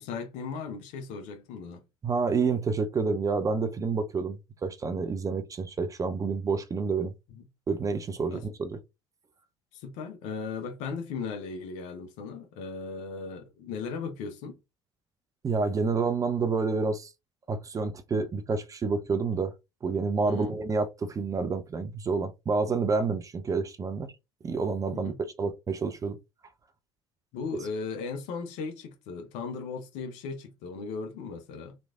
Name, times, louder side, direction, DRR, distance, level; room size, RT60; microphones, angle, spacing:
voice 1, 0.0-1.8 7.3-7.4 8.3-8.4 9.7-14.6 20.3-20.6 24.9-25.2 27.3-31.8, left 5 dB, 55° left, 0.8 m, -37 dB
voice 2, 2.0-7.1 7.7-8.8 15.4-17.1 17.5-19.5 19.8-24.1 24.4-25.1 25.4-26.2, right 4 dB, 25° right, 0.5 m, -28 dB
3.1 x 2.5 x 2.3 m
figure-of-eight pair, 60°, 14 cm